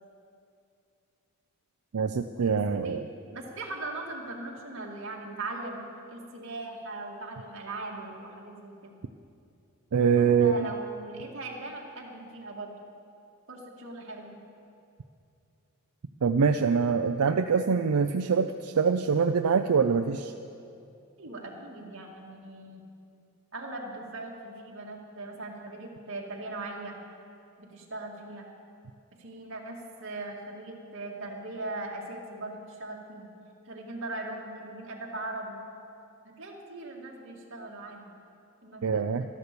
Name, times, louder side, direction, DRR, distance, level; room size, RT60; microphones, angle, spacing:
voice 1, 1.9-3.1 9.9-10.7 16.2-20.3 38.8-39.3, right 6 dB, 85° right, 7 dB, 0.5 m, -24 dB
voice 2, 2.5-3.0 3.3-5.8 6.1-9.0 10.1-12.7 13.5-14.4 21.2-22.8 23.5-27.0 27.6-28.5 29.2-33.3 33.7-35.6 36.2-38.1 38.6-39.1, right 2 dB, 60° right, -1 dB, 2.2 m, -39 dB
13.5 x 12.5 x 6.8 m, 2.5 s
head